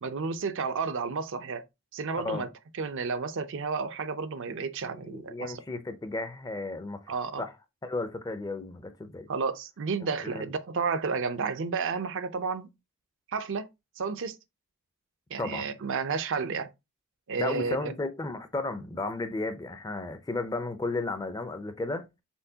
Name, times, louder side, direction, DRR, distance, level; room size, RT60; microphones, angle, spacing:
voice 1, 0.0-1.6 1.9-2.5 2.8-5.6 7.1-7.4 9.3-12.7 13.3-13.7 14.0-14.4 15.3-16.7 17.3-17.9, right 5 dB, 55° right, 0.5 m, -31 dB
voice 2, 5.1-7.5 7.8-9.3 10.2-10.5 15.4-15.7 17.4-22.1, left 2 dB, 15° left, 0.4 m, -34 dB
4.4 x 3.6 x 2.7 m
head